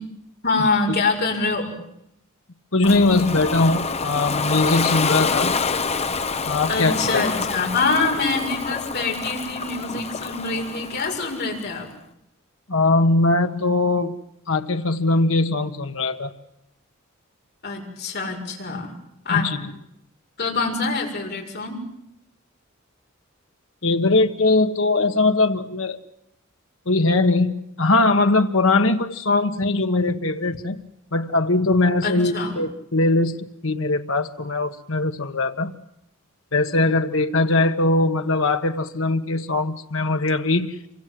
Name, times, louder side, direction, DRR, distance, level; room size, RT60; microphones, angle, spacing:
voice 1, 0.4-1.7 6.7-11.9 17.6-18.9 19.2-19.4 20.4-21.8 32.0-32.5, left 3 dB, 50° left, 1 dB, 6.6 m, -25 dB
voice 2, 2.7-5.5 6.4-7.2 12.7-14.2 14.5-16.3 19.3-19.7 23.8-26.0 26.8-30.8 31.1-35.7 36.5-40.8, left 2 dB, 70° left, 6 dB, 1.5 m, -21 dB
Ocean, 2.8-11.7, left 4 dB, 30° left, 0.9 m, -27 dB
27.5 x 25.0 x 7.8 m, 0.80 s
head